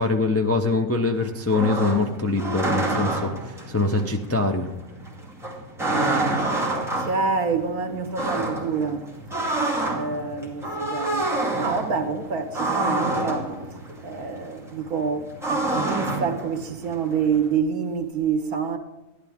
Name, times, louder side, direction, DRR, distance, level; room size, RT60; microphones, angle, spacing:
voice 1, 0.0-4.7 6.5-6.7, left 3 dB, 20° left, 0.4 m, -24 dB
sound 1, 1.1-17.5, right 2 dB, ahead, 2.2 m, -28 dB
voice 2, 6.2-9.1 9.9-11.3 11.6-13.5 14.0-18.8, right 5 dB, 80° right, 1.7 m, -27 dB
13.0 x 11.0 x 3.6 m
omnidirectional pair, 1.6 m